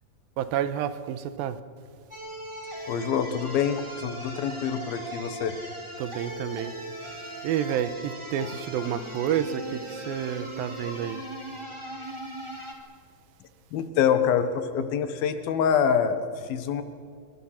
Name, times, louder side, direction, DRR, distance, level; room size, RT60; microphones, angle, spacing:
voice 1, 0.4-1.6 6.0-6.7 7.4-11.2, right 9 dB, 90° right, 12 dB, 2.8 m, -29 dB
sound 1, 2.1-12.7, right 1 dB, 10° right, 2.1 m, -39 dB
voice 2, 2.9-5.5 8.4-8.6 13.7-16.8, left 7 dB, 85° left, 9 dB, 3.2 m, -26 dB
25.0 x 24.5 x 5.9 m, 2.1 s
omnidirectional pair, 4.1 m